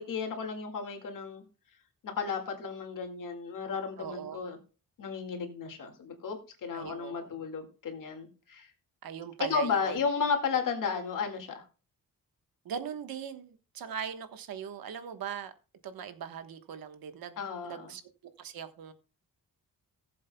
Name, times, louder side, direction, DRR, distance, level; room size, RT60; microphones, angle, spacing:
voice 1, 0.0-1.4 2.0-4.6 5.0-8.7 9.5-11.6 17.4-17.9, left 5 dB, 65° left, 4 dB, 2.1 m, -33 dB
voice 2, 4.0-4.4 6.7-7.4 9.0-10.0 10.8-11.0 12.6-15.5 15.8-18.0 18.4-18.9, right 8 dB, 85° right, 9 dB, 1.3 m, -40 dB
19.0 x 7.6 x 2.2 m, 0.35 s
wide cardioid pair, 170°, 34 cm